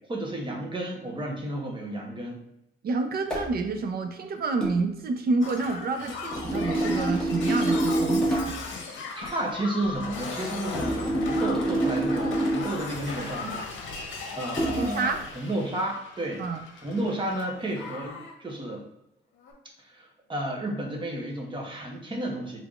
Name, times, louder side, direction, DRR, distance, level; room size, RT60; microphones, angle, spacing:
voice 1, 0.1-2.4 9.2-16.4 16.8-18.9 19.8-22.6, right 1 dB, 25° right, 0 dB, 1.0 m, -32 dB
voice 2, 2.8-8.6 14.7-15.2 16.4-16.6, right 3 dB, 50° right, 6 dB, 0.6 m, -28 dB
sound 1, 3.3-3.6 4.6-4.8 6.3-8.6 10.7-12.8 14.6-14.9, right 1 dB, 5° left, 1.3 m, -26 dB
Shatter, 5.4-17.4 17.7-18.3 19.4-19.5, left 4 dB, 75° left, 0.8 m, -38 dB
3.5 x 3.4 x 2.4 m, 0.85 s
cardioid pair, 90°, 20 cm